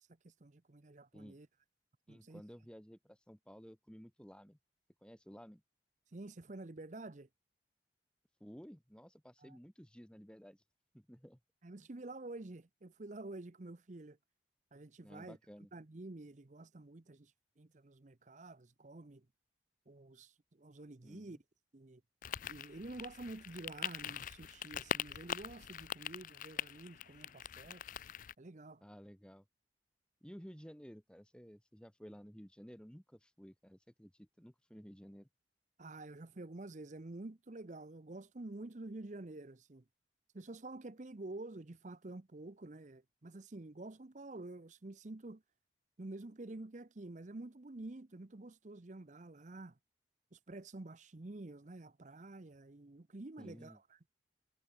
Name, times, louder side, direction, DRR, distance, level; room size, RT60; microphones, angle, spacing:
voice 1, 0.2-1.5 2.1-2.4 6.1-7.3 9.4-9.6 11.6-14.2 14.7-15.4 15.7-17.3 17.6-19.3 19.9-21.4 21.7-22.0 22.4-27.8 28.4-28.8 35.8-39.8 40.3-45.4 46.0-49.8 50.3-53.8, right 2 dB, 40° right, 0.8 m, -49 dB
voice 2, 2.1-4.6 5.0-5.6 8.4-10.6 10.9-11.4 15.0-15.7 21.0-21.4 28.8-29.4 30.2-35.3 53.4-53.8, equal, 5° left, 2.2 m, -54 dB
sound 1, 22.2-28.3, left 9 dB, 45° left, 0.4 m, -43 dB
head